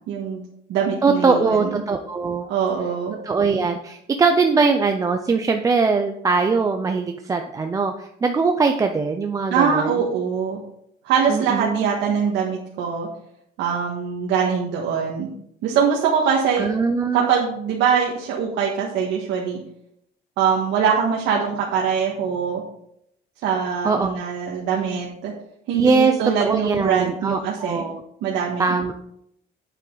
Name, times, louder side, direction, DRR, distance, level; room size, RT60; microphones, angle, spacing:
voice 1, 0.1-0.4 0.7-1.8 2.5-3.1 9.5-10.6 11.0-13.1 13.6-15.3 15.6-16.7 17.1-19.6 20.4-22.6 23.4-25.3 25.7-27.8 28.2-28.7, right 7 dB, 85° right, -2 dB, 1.7 m, -22 dB
voice 2, 1.0-2.5 3.2-9.9 11.3-11.9 16.6-17.3 23.8-24.1 25.7-28.0 28.6-28.9, right 4 dB, 20° right, 5 dB, 0.5 m, -21 dB
8.5 x 8.3 x 3.9 m, 0.74 s
cardioid pair, 170°, 18 cm